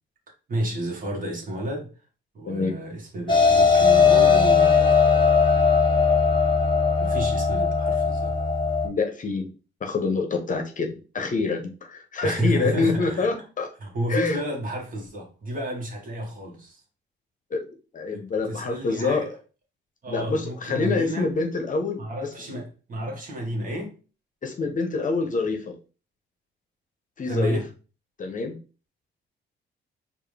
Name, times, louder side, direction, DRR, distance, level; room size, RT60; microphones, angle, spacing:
voice 1, 0.5-1.9 2.3-5.0 7.0-8.3 12.2-13.3 13.8-16.8 18.1-19.3 20.0-21.3 22.0-23.9 27.3-27.7, right 1 dB, 45° right, 1.6 m, -31 dB
sound 1, 3.3-8.9, left 5 dB, 25° left, 1.1 m, -19 dB
voice 2, 8.8-9.5 9.8-13.7 14.1-14.4 17.5-17.6 17.9-19.3 20.1-22.0 24.4-25.7 27.2-27.6 28.2-28.5, left 4 dB, 40° left, 0.9 m, -26 dB
4.7 x 2.6 x 3.3 m
cardioid pair, 90°, 20 cm